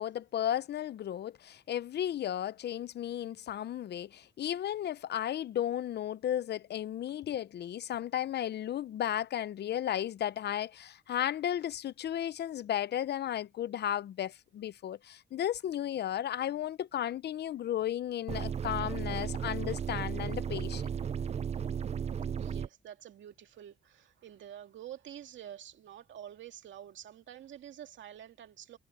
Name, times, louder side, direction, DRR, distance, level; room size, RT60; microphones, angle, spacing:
voice 1, 0.0-21.0, left 11 dB, 55° left, 0.6 m, -34 dB
sound 1, 18.3-22.7, right 7 dB, 35° right, 0.5 m, -35 dB
voice 2, 22.4-28.8, right 10 dB, 70° right, 2.4 m, -48 dB
cardioid pair, 90°, 20 cm